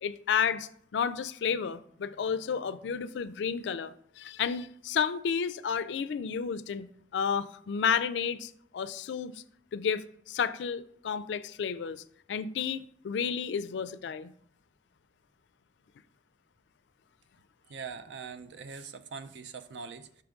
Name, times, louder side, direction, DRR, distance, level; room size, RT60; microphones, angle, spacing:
voice 1, 0.0-9.4 9.7-12.0 12.3-14.3, left 7 dB, 70° left, 0.3 m, -31 dB
voice 2, 17.7-20.2, right 5 dB, 70° right, 0.4 m, -42 dB
5.8 x 3.5 x 5.1 m
head